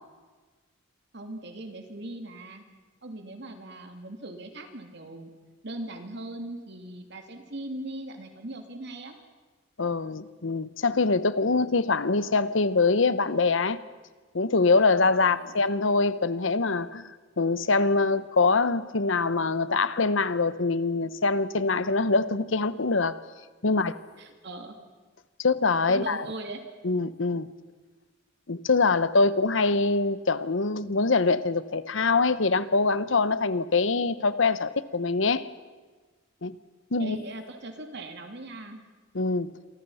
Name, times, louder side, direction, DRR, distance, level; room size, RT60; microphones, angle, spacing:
voice 1, 1.1-2.6 3.0-5.3 5.6-9.2 15.2-15.5 23.6-23.7 24.2-24.8 25.9-26.6 37.0-38.8, right 1 dB, 60° right, 5 dB, 2.9 m, -39 dB
voice 2, 9.8-13.8 14.3-23.2 23.6-23.9 25.4-26.3 26.8-27.5 28.5-35.5 36.4-36.5 36.9-37.2 39.1-39.6, left 3 dB, 70° left, 14 dB, 1.0 m, -24 dB
27.5 x 24.0 x 5.7 m, 1.3 s
head